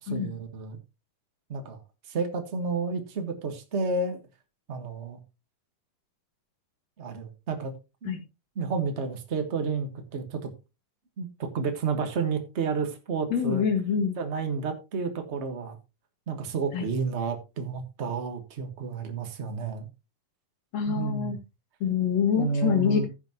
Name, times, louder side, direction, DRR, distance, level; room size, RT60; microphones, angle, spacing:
voice 1, 0.0-0.8 1.5-1.8 2.1-4.2 4.7-5.2 7.0-7.7 8.0-8.2 8.5-10.5 11.2-13.6 14.2-15.8 16.3-19.9 20.8-21.4 22.4-23.0, right 4 dB, 65° right, 0.6 m, -31 dB
voice 2, 13.3-14.2 16.7-16.9 20.7-21.4 21.8-23.1, left 7 dB, 55° left, 2.7 m, -25 dB
15.0 x 7.2 x 2.9 m
omnidirectional pair, 3.7 m